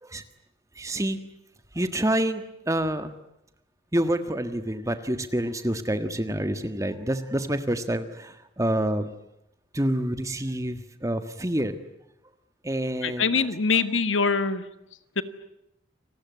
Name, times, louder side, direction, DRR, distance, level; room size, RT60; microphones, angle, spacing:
voice 1, 0.7-1.2 1.7-3.1 3.9-9.1 9.7-11.8 12.6-13.4, right 1 dB, 15° right, 10 dB, 1.6 m, -27 dB
voice 2, 13.0-14.7 15.1-15.2, left 5 dB, 85° left, 12 dB, 1.6 m, -24 dB
28.5 x 19.5 x 9.6 m, 0.85 s
head